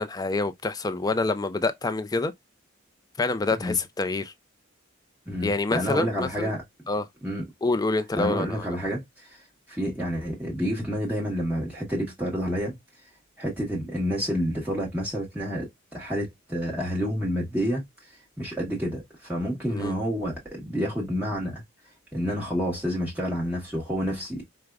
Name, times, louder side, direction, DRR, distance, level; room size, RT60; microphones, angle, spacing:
voice 1, 0.0-2.3 3.2-4.3 5.4-6.5 6.9-7.1 7.6-8.6 19.7-19.9, left 3 dB, 20° left, 0.4 m, -27 dB
voice 2, 5.3-6.6 7.2-7.4 8.2-9.4 9.7-12.7 13.4-21.6 22.1-24.4, equal, 10° right, 1.0 m, -29 dB
4.7 x 2.1 x 2.2 m
head